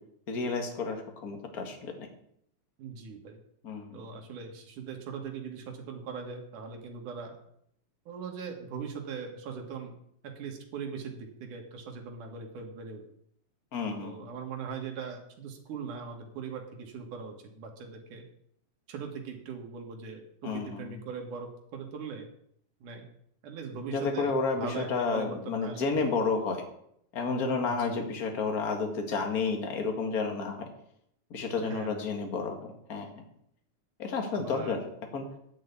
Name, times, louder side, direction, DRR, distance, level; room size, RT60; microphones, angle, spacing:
voice 1, 0.3-2.1 3.6-4.0 13.7-14.3 20.4-21.0 23.9-26.6 27.1-30.7 31.3-33.1 34.0-34.9 35.1-35.3, left 4 dB, 35° left, 4 dB, 1.7 m, -31 dB
voice 2, 2.8-3.4 3.9-7.4 8.1-9.9 10.2-13.0 14.0-18.2 18.9-22.3 22.8-23.0 23.4-26.0 27.6-28.1 31.6-32.1 34.3-34.8, right 5 dB, 85° right, 2 dB, 3.2 m, -40 dB
10.5 x 6.4 x 8.3 m, 0.71 s
omnidirectional pair, 3.5 m